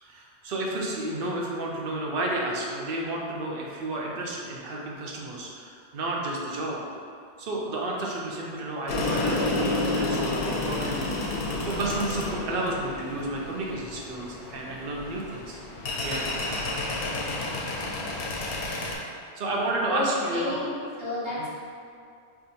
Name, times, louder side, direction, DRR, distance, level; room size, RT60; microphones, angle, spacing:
voice 1, 0.0-6.8 7.4-11.4 11.7-15.6 16.0-16.2 18.8-20.6 21.4-21.5, right 1 dB, 60° right, -2 dB, 0.8 m, -31 dB
sound 1, 8.9-18.9, left 2 dB, 65° left, 0.7 m, -30 dB
voice 2, 19.9-21.5, left 2 dB, 30° right, -9 dB, 0.8 m, -31 dB
4.6 x 2.5 x 2.7 m, 2.3 s
omnidirectional pair, 1.1 m